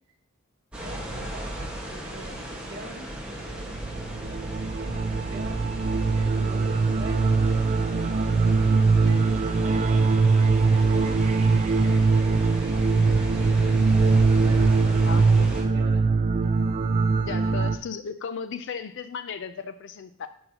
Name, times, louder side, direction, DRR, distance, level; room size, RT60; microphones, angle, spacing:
sound 1, 0.7-15.6, right 1 dB, 5° right, 1.4 m, -35 dB
voice 1, 0.8-4.6 4.9-5.6 6.2-7.5 8.4-12.0 12.6-16.0 16.4-16.5, right 1 dB, 50° right, -1 dB, 1.8 m, -45 dB
sound 2, 3.6-17.8, right 4 dB, 35° right, 0.4 m, -22 dB
voice 2, 15.0-15.5 17.2-20.3, left 6 dB, 55° left, 10 dB, 0.5 m, -35 dB
11.0 x 5.6 x 2.9 m, 0.63 s
head